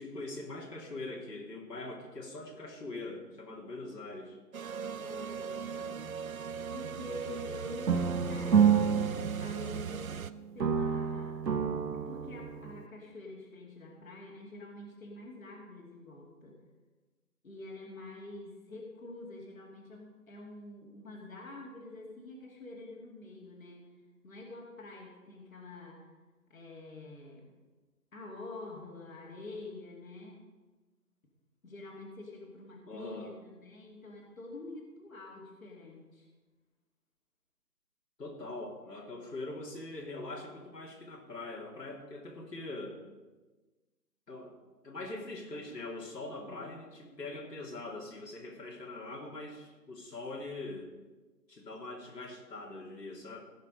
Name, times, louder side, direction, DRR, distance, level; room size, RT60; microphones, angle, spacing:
voice 1, 0.0-4.4 32.8-33.3 38.2-43.0 44.3-44.5 44.8-50.9 51.5-53.4, left 2 dB, 80° left, -1 dB, 2.8 m, -42 dB
sound 1, 4.5-10.3, right 6 dB, 60° right, 0.5 m, -39 dB
voice 2, 4.9-10.2 10.5-16.6 17.4-23.9 24.2-26.1 26.5-27.5 28.1-30.4 31.6-36.3 46.4-46.9, left 2 dB, 55° left, -1 dB, 2.6 m, -47 dB
sound 2, 7.9-10.2 10.6-12.9, right 7 dB, 85° right, 1.1 m, -29 dB
16.5 x 6.6 x 5.2 m, 1.2 s
figure-of-eight pair, 170°, 48 cm